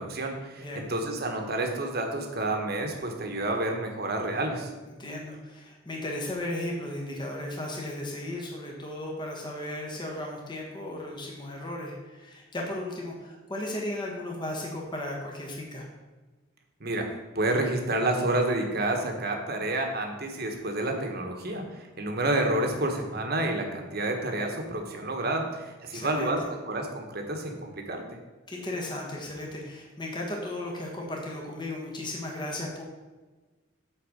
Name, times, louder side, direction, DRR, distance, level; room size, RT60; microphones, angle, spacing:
voice 1, 0.0-4.7 16.8-17.1 17.3-28.0, right 2 dB, 50° right, 3 dB, 1.4 m, -29 dB
voice 2, 0.6-0.9 4.9-15.9 25.9-26.5 28.5-32.8, left 1 dB, 25° left, -1 dB, 1.3 m, -35 dB
9.2 x 4.2 x 6.5 m, 1.2 s
head